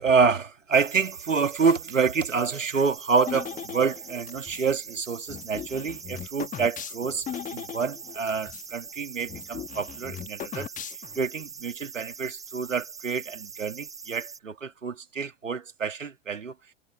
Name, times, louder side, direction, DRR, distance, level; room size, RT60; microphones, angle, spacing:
voice 1, 0.0-16.5, right 5 dB, 75° right, 2.4 m, -27 dB
sound 1, 0.7-14.4, right 6 dB, 10° right, 0.6 m, -43 dB
sound 2, 3.3-4.7 5.3-8.7 9.0-9.1 9.3-11.3, left 10 dB, 20° left, 1.4 m, -38 dB
figure-of-eight pair, 95°, 38 cm